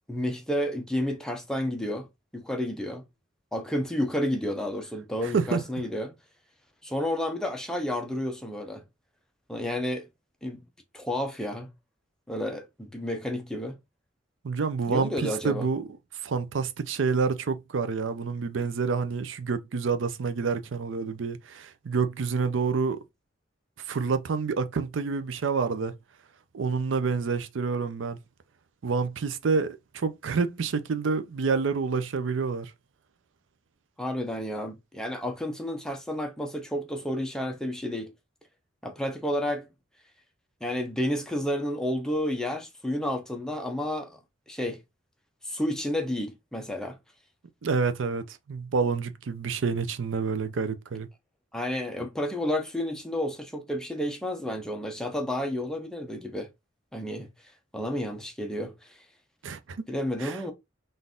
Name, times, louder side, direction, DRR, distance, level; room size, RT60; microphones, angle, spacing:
voice 1, 0.1-2.1 2.3-3.0 3.5-6.1 6.8-8.8 9.5-10.1 10.4-10.6 10.9-11.7 12.3-13.8 14.9-15.7 34.0-38.1 38.8-39.7 40.6-44.2 44.5-44.8 45.4-47.0 51.5-56.5 56.9-57.3 57.7-58.7 59.9-60.5, left 1 dB, 5° left, 0.7 m, -31 dB
voice 2, 5.2-5.6 14.4-15.9 16.2-23.0 23.9-25.9 26.5-28.2 28.8-32.7 47.6-51.1 59.4-59.8 60.2-60.4, right 5 dB, 80° right, 0.5 m, -28 dB
3.9 x 2.6 x 3.6 m
head